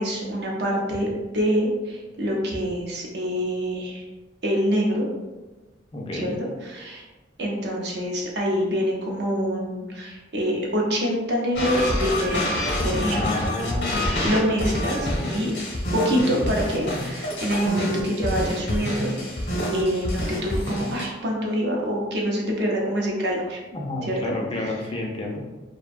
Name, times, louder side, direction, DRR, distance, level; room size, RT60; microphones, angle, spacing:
voice 1, 0.0-4.0 4.4-5.1 6.1-7.1 7.4-12.5 12.8-13.4 14.2-15.5 15.9-19.1 19.7-23.6 24.0-24.3, equal, 65° right, -2 dB, 0.6 m, -25 dB
voice 2, 5.9-6.3 13.1-14.3 23.7-25.4, left 2 dB, 30° left, -1 dB, 0.4 m, -30 dB
sound 1, 11.6-21.1, left 1 dB, 70° left, 0.7 m, -27 dB
2.5 x 2.1 x 2.4 m, 1.1 s
head